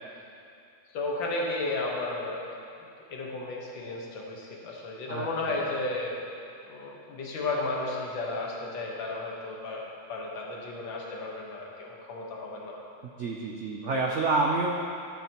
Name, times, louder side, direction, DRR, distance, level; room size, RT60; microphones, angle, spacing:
voice 1, 0.9-6.2 6.6-9.8 10.1-12.8 13.8-14.0, left 2 dB, 85° left, -2 dB, 2.0 m, -34 dB
voice 2, 5.1-5.6 13.2-14.8, right 3 dB, 85° right, 0 dB, 0.6 m, -28 dB
12.5 x 7.6 x 2.9 m, 2.6 s
omnidirectional pair, 2.0 m